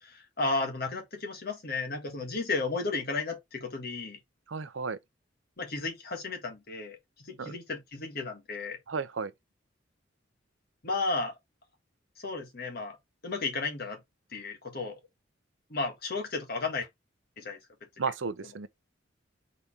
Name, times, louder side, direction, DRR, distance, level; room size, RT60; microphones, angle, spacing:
voice 1, 0.0-4.2 5.6-8.8 10.8-11.3 12.2-13.0 13.2-14.0 14.3-14.9 15.7-16.9 17.4-17.6, left 3 dB, 55° left, 1.7 m, -33 dB
voice 2, 4.5-5.0 7.4-7.5 8.9-9.3 18.0-18.7, right 5 dB, 75° right, 0.6 m, -33 dB
4.2 x 3.5 x 3.6 m
head